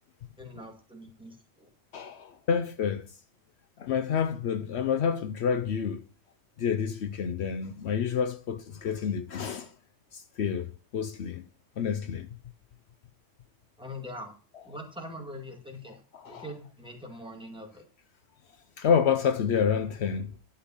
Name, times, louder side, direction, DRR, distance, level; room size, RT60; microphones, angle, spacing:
voice 1, 0.4-1.7 13.8-14.4 14.7-17.8, left 1 dB, 5° right, 1.9 m, -43 dB
voice 2, 1.9-3.1 3.8-6.0 6.6-9.7 10.1-11.5 11.8-12.3 16.1-16.4 18.8-20.4, left 7 dB, 70° left, 0.9 m, -28 dB
11.5 x 4.5 x 7.0 m
omnidirectional pair, 1.2 m